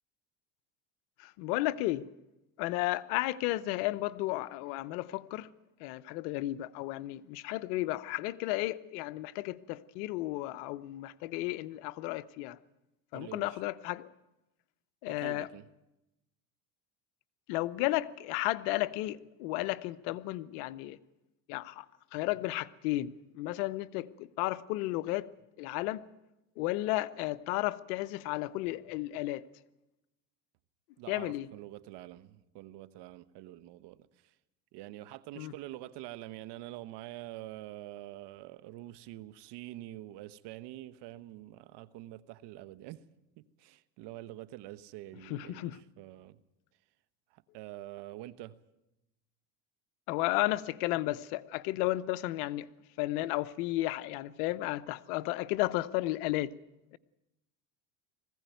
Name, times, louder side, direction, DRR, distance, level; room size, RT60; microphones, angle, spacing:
voice 1, 1.2-2.1 2.6-5.5 5.8-12.6 13.1-14.1 15.0-15.5 17.5-21.0 21.5-21.9 22.1-25.3 25.6-26.1 26.6-29.5 31.1-31.5 35.4-35.5 45.2-45.8 50.1-52.7 53.0-56.5, left 17 dB, 80° left, 0.9 m, -33 dB
voice 2, 13.1-13.6 15.1-15.7 31.0-34.3 34.7-43.0 43.4-46.4 47.3-48.6, right 15 dB, 60° right, 1.1 m, -46 dB
20.0 x 16.0 x 9.2 m
supercardioid pair, 110°, 46 cm